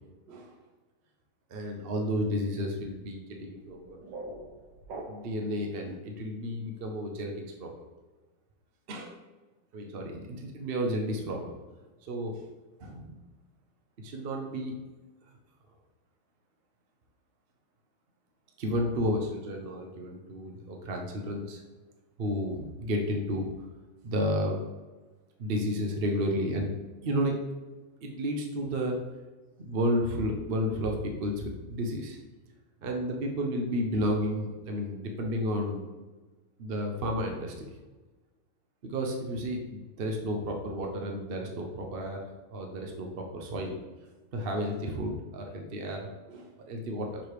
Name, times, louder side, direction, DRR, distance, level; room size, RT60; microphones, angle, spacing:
voice 1, 1.5-4.0 5.1-7.8 8.9-9.2 9.7-11.6 12.0-12.5 12.8-13.1 14.0-14.8 18.6-21.6 22.2-23.5 24.0-24.6 25.4-26.7 27.0-27.4 28.0-29.0 29.6-32.2 32.8-35.8 36.6-37.8 38.8-42.2 42.5-43.8 44.3-47.2, equal, 50° right, 2 dB, 0.6 m, -32 dB
sound 1, 3.6-5.5, right 1 dB, 85° right, 1.8 m, -43 dB
6.5 x 3.3 x 4.7 m, 1.2 s
omnidirectional pair, 1.9 m